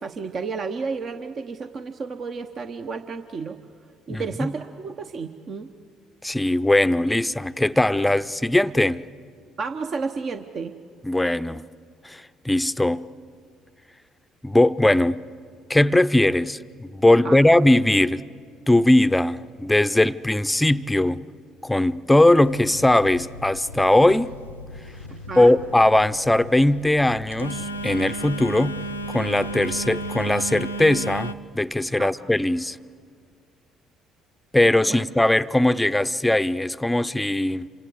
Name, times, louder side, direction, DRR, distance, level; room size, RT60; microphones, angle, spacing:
voice 1, 0.0-3.6 4.1-5.7 9.6-10.7 17.2-17.4 25.1-25.6 31.9-32.1 34.9-35.0, right 4 dB, 45° right, 0.9 m, -32 dB
voice 2, 4.1-4.5 6.2-9.0 11.0-11.6 12.0-13.1 14.4-15.2 15.7-18.2 18.7-21.2 21.6-24.3 25.4-28.8 29.1-32.8 34.5-37.7, left 1 dB, 10° left, 0.7 m, -20 dB
Telephone, 22.4-31.3, right 1 dB, 90° left, 0.6 m, -34 dB
28.0 x 26.5 x 7.9 m
figure-of-eight pair, 50°, 0 cm